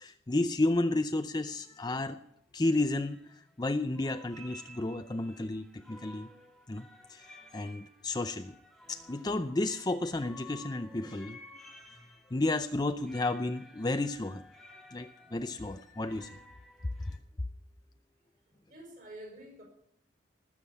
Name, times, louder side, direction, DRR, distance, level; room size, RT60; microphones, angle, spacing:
voice 1, 0.0-2.2 2.5-6.3 6.7-8.6 8.9-11.4 12.3-14.4 14.9-16.4, left 2 dB, 20° left, 8 dB, 0.5 m, -32 dB
sound 1, 1.3-1.4 1.6-2.0 2.9-3.7 3.9-17.2, left 1 dB, ahead, 1.7 m, -54 dB
voice 2, 18.4-19.6, right 1 dB, 45° right, 2 dB, 5.7 m, -49 dB
19.5 x 7.4 x 8.5 m, 0.73 s
head